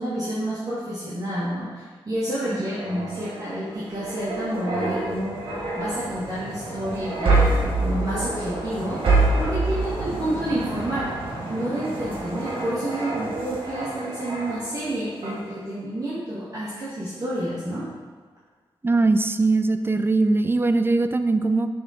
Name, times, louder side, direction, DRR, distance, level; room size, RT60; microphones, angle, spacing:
voice 1, 0.0-9.0 9.4-11.1 11.5-17.8, right 1 dB, 40° right, -9 dB, 1.5 m, -29 dB
sound 1, 2.5-14.9 15.2-15.5, right 2 dB, 70° right, 1.7 m, -27 dB
voice 2, 18.8-21.7, right 3 dB, 25° right, 10 dB, 0.4 m, -21 dB
6.8 x 3.7 x 4.2 m, 1.5 s
cardioid pair, 65°, 9 cm